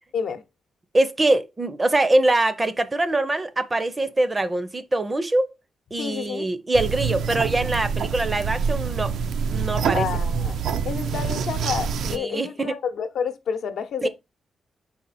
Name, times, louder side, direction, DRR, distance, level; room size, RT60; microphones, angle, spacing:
voice 1, 0.9-5.5 5.9-9.1 9.5-10.1 12.0-12.7 14.0-14.1, right 2 dB, 20° right, 0.5 m, -23 dB
voice 2, 6.0-6.5 9.9-10.6 10.8-14.1, left 7 dB, 70° left, 0.8 m, -29 dB
sound 1, 6.7-12.2, right 6 dB, 80° right, 0.5 m, -26 dB
5.7 x 4.2 x 4.0 m
wide cardioid pair, 150°, 0 cm